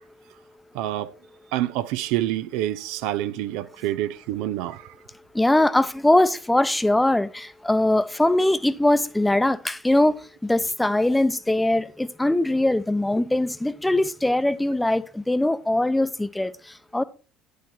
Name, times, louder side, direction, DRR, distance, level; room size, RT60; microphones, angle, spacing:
voice 1, 0.7-1.1 1.5-4.9, right 14 dB, 65° right, 0.7 m, -27 dB
voice 2, 5.3-17.0, left 1 dB, 10° left, 0.8 m, -21 dB
10.5 x 8.2 x 4.5 m
figure-of-eight pair, 60°, 0 cm